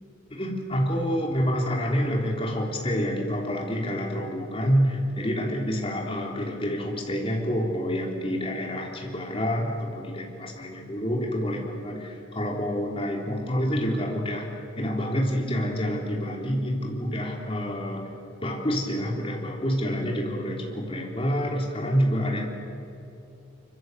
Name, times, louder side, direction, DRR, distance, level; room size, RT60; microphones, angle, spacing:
voice 1, 0.3-14.5 14.8-18.0 18.4-22.5, equal, 25° left, 0 dB, 3.5 m, -27 dB
25.0 x 24.5 x 8.1 m, 2.7 s
head